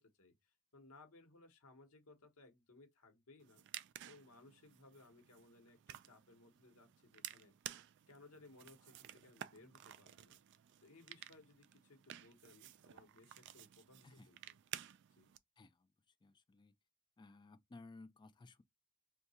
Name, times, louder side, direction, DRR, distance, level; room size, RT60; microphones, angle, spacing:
voice 1, 0.0-3.6 4.0-7.5 8.1-10.4 10.8-14.6 15.1-15.3, left 2 dB, 90° left, 1.0 m, -63 dB
sound 1, 3.4-15.4, right 12 dB, 55° right, 0.3 m, -54 dB
voice 2, 15.6-15.9 16.2-16.7 17.2-18.6, left 3 dB, 20° left, 0.3 m, -58 dB
2.8 x 2.2 x 4.1 m
head